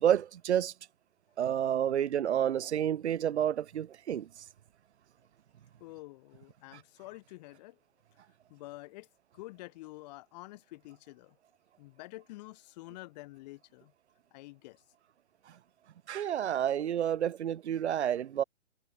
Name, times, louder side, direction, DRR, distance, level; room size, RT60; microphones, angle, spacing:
voice 1, 0.0-0.7 1.4-4.5 6.7-6.8 15.5-15.6 16.1-18.4, right 10 dB, 75° right, 0.8 m, -30 dB
voice 2, 5.8-7.8 8.5-9.1 9.3-11.4 11.8-13.9 14.3-14.8, left 20 dB, 40° left, 2.5 m, -48 dB
hypercardioid pair, 135°, 34 cm